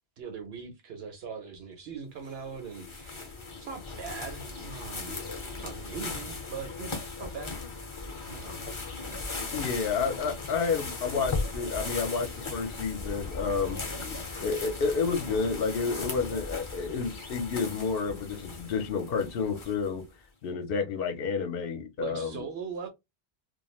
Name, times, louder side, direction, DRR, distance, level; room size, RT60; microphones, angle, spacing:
voice 1, 0.2-3.3 3.6-5.3 5.6-7.9 8.3-8.7 9.0-9.2 22.0-22.9, right 6 dB, 70° right, 0.9 m, -41 dB
sound 1, 2.2-20.0, left 3 dB, 30° left, 0.7 m, -38 dB
voice 2, 9.5-13.8 14.4-20.1 20.4-22.4, left 5 dB, 65° left, 0.9 m, -30 dB
3.1 x 2.3 x 2.3 m
omnidirectional pair, 1.1 m